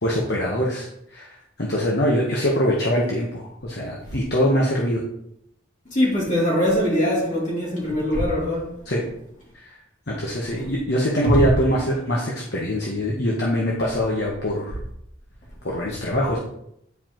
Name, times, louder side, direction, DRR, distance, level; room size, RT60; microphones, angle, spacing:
voice 1, 0.0-5.0 8.9-9.0 9.6-9.8 10.1-14.8 15.6-16.4, equal, 55° left, -3 dB, 1.1 m, -23 dB
voice 2, 5.9-8.7 10.5-10.6 11.2-11.4, equal, 40° left, -5 dB, 2.8 m, -22 dB
9.5 x 4.9 x 3.0 m, 0.75 s
head